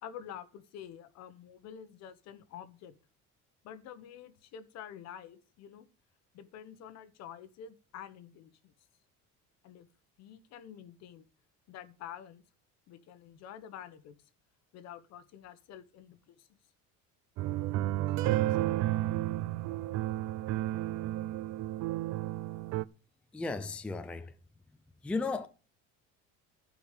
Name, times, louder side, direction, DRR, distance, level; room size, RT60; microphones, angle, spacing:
voice 1, 0.0-2.9 3.6-5.9 6.3-8.7 9.6-9.9 10.2-11.2 11.7-12.4 12.9-14.1 14.7-16.5 18.2-18.7, left 9 dB, 60° left, 1.2 m, -48 dB
sound 1, 17.4-22.8, right 15 dB, 65° right, 0.5 m, -32 dB
voice 2, 23.3-24.3 25.0-25.5, left 3 dB, 5° left, 0.5 m, -35 dB
11.5 x 5.1 x 8.2 m
cardioid pair, 170°, 30 cm